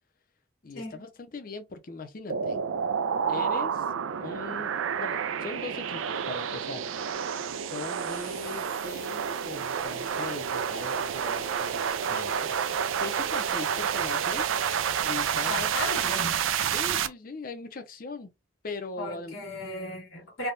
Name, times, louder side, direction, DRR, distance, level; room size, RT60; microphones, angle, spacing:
voice 1, 0.6-2.7 3.3-3.9 4.2-6.9 7.6-14.5 15.0-15.7 16.0-16.3 16.6-18.3 18.6-19.4, left 3 dB, 45° left, 0.6 m, -40 dB
sound 1, 2.3-17.1, right 7 dB, 85° right, 0.4 m, -29 dB
voice 2, 15.5-16.4 19.0-20.5, left 2 dB, 90° left, 1.3 m, -35 dB
3.4 x 2.2 x 2.5 m
head